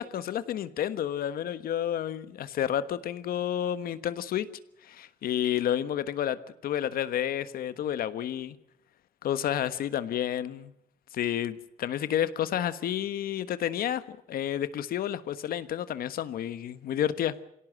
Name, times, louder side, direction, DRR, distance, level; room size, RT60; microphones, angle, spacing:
voice 1, 0.0-4.5 4.8-8.6 9.2-10.7 11.1-17.3, left 10 dB, 70° left, 14 dB, 1.4 m, -30 dB
25.5 x 17.5 x 7.7 m, 0.78 s
cardioid pair, 115°, 16 cm